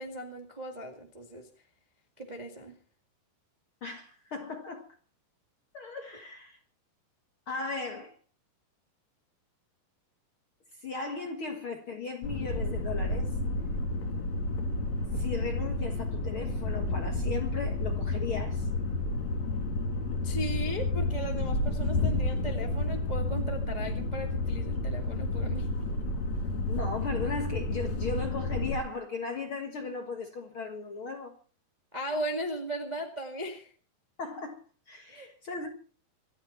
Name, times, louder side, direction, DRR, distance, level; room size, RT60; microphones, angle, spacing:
voice 1, 0.0-1.5 2.2-2.7 20.2-25.7 31.9-33.7 35.1-35.3, right 1 dB, 60° right, 0.4 m, -37 dB
voice 2, 3.8-4.9 5.7-6.6 7.5-8.1 10.8-13.4 15.1-18.7 26.7-31.3 34.2-34.6 34.9-35.7, left 4 dB, 70° left, 1.2 m, -37 dB
sound 1, 12.2-28.8, left 2 dB, 45° left, 3.7 m, -31 dB
26.5 x 9.8 x 4.3 m
omnidirectional pair, 4.9 m